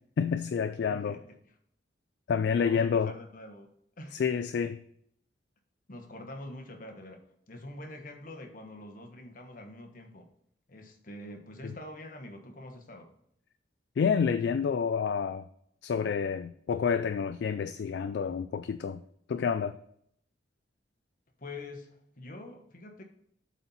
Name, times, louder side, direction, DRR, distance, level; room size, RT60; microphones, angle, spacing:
voice 1, 0.2-1.2 2.3-3.1 4.1-4.8 14.0-15.4 15.8-19.0 19.3-19.7, left 6 dB, 65° left, 11 dB, 0.3 m, -28 dB
voice 2, 0.9-1.4 2.5-3.7 4.0-4.2 5.9-10.3 10.7-13.1 21.4-23.0, left 1 dB, 50° left, 4 dB, 1.2 m, -45 dB
7.9 x 4.3 x 5.5 m, 0.70 s
head